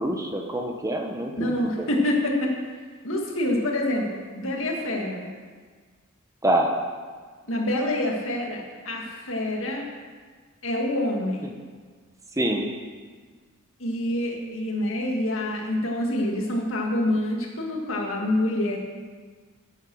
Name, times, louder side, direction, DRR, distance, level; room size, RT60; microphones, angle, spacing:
voice 1, 0.0-1.9 6.4-6.8 12.3-12.7, right 1 dB, 15° right, 3 dB, 0.9 m, -26 dB
voice 2, 1.4-2.7 3.0-5.3 7.4-9.8 10.6-11.5 13.8-18.8, left 1 dB, 65° left, 0 dB, 2.0 m, -26 dB
9.1 x 9.0 x 6.3 m, 1.5 s
head